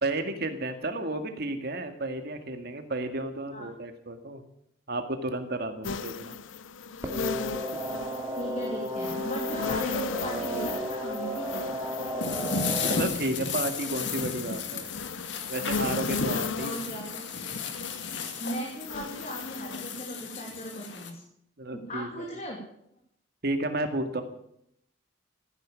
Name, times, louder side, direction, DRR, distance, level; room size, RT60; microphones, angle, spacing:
voice 1, 0.0-4.4 4.9-6.3 12.8-14.9 15.5-16.7 17.5-17.6 21.6-22.3 23.4-24.2, right 2 dB, 55° right, 7 dB, 2.0 m, -32 dB
sound 1, 5.8-20.0, left 5 dB, 90° left, 0.7 m, -37 dB
sound 2, 7.0-13.0, right 1 dB, 15° right, 2.5 m, -33 dB
voice 2, 8.4-11.7 16.5-17.2 18.4-21.2 21.7-22.6, equal, 40° left, -1 dB, 2.8 m, -37 dB
sound 3, 12.2-21.1, left 4 dB, 65° left, 2.1 m, -34 dB
15.0 x 10.5 x 8.9 m, 0.74 s
head